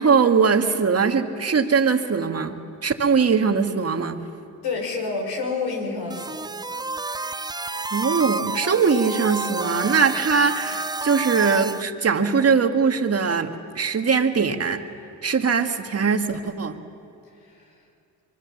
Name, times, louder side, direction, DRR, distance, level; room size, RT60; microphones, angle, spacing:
voice 1, 0.0-4.2 7.9-14.8 15.2-16.8, right 5 dB, 35° right, 6 dB, 2.0 m, -21 dB
voice 2, 4.6-6.5 17.4-17.7, left 4 dB, 70° left, 1 dB, 5.7 m, -29 dB
sound 1, 6.1-11.8, right 3 dB, 10° right, 0.5 m, -30 dB
24.5 x 23.0 x 7.2 m, 2.5 s
supercardioid pair, 60°, 40 cm